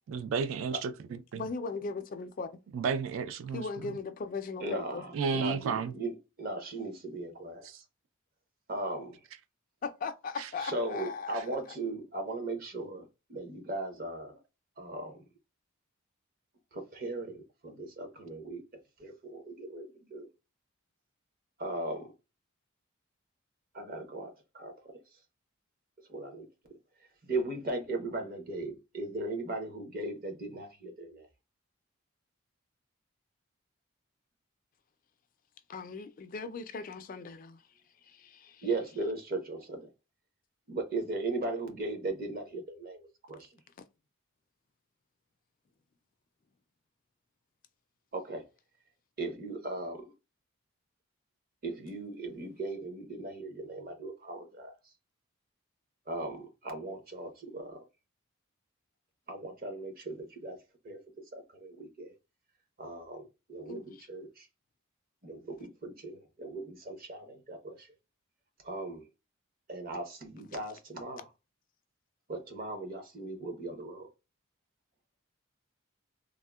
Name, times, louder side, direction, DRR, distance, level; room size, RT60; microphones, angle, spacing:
voice 1, 0.1-0.9 1.3-1.4 2.7-3.6 5.1-5.9 7.6-7.8, right 5 dB, 70° right, 0.3 m, -31 dB
voice 2, 1.4-2.5 3.5-5.0 9.8-11.5 35.7-37.6 38.0-38.7 63.7-64.1, left 4 dB, 40° left, 0.3 m, -38 dB
voice 3, 4.6-7.7 8.7-9.2 10.6-13.0 13.3-14.4 14.8-15.2 16.7-18.6 19.0-20.3 21.6-22.1 23.7-24.7 26.1-26.5 27.2-31.3 38.6-39.9 40.7-43.5 48.1-48.4 49.2-50.1 51.6-54.7 56.1-57.8 59.3-60.6 60.8-61.0 61.3-62.1 62.8-64.4 65.2-67.9 68.6-69.0 69.7-71.2 72.3-74.1, right 2 dB, 45° right, 0.7 m, -38 dB
3.5 x 2.0 x 2.2 m
head